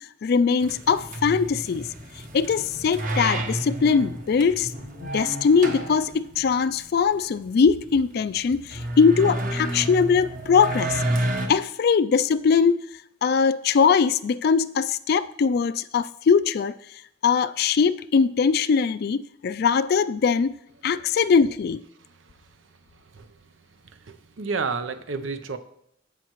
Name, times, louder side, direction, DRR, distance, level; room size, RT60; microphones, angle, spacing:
voice 1, 0.2-1.9 2.3-4.7 5.0-11.0 11.5-12.8 13.2-16.7 17.2-20.5 20.8-21.8, left 5 dB, 55° left, 0.3 m, -21 dB
sound 1, 0.6-11.5, right 1 dB, 45° right, 1.1 m, -31 dB
voice 2, 24.0-25.6, right 4 dB, 85° right, 0.7 m, -30 dB
15.0 x 5.8 x 3.1 m
head